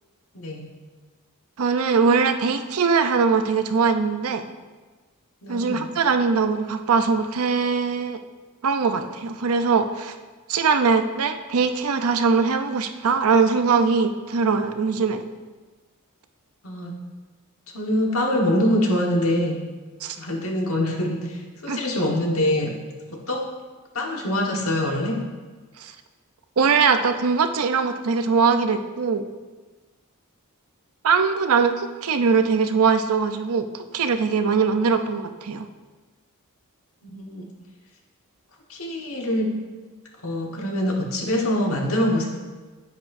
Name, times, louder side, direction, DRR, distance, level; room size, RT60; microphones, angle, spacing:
voice 1, 0.3-0.7 5.4-5.9 16.6-16.9 17.7-19.6 20.1-22.7 23.1-23.4 23.9-25.2 37.0-37.5 38.7-39.5 40.2-42.3, left 1 dB, 70° left, 0 dB, 1.4 m, -24 dB
voice 2, 1.6-4.4 5.5-8.2 8.6-10.1 10.5-15.2 20.0-20.2 21.7-21.8 25.8-25.9 26.6-29.2 31.0-35.7, right 5 dB, 75° right, 8 dB, 0.6 m, -21 dB
9.4 x 8.4 x 2.6 m, 1.3 s
head